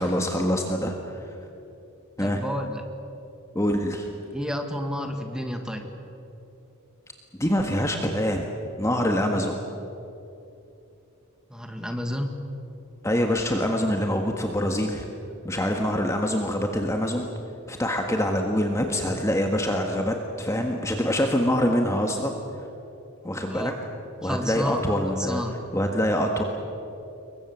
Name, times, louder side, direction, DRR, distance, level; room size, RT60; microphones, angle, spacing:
voice 1, 0.0-1.4 2.2-2.4 3.5-4.1 7.3-8.4 8.8-9.6 13.0-15.0 15.4-17.3 17.7-22.4 23.2-23.7 24.2-25.4 25.7-26.4, equal, 15° left, 2 dB, 1.6 m, -25 dB
voice 2, 2.2-2.8 4.3-5.9 11.5-12.4 23.5-23.7 24.2-24.9 25.2-25.5, equal, 5° right, 4 dB, 2.0 m, -31 dB
28.0 x 23.0 x 7.3 m, 2.8 s
head